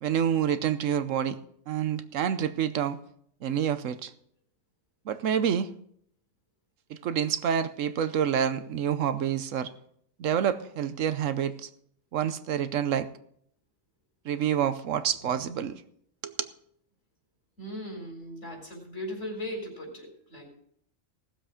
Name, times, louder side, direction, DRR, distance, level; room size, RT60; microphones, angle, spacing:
voice 1, 0.0-1.4 1.7-3.0 3.4-4.1 5.1-5.7 6.9-9.7 10.2-11.7 12.1-13.1 14.2-15.8 16.2-16.5, right 9 dB, 75° right, 12 dB, 1.1 m, -28 dB
voice 2, 17.6-20.5, left 1 dB, 60° left, 1 dB, 4.5 m, -38 dB
18.0 x 7.4 x 5.0 m, 0.68 s
omnidirectional pair, 1.3 m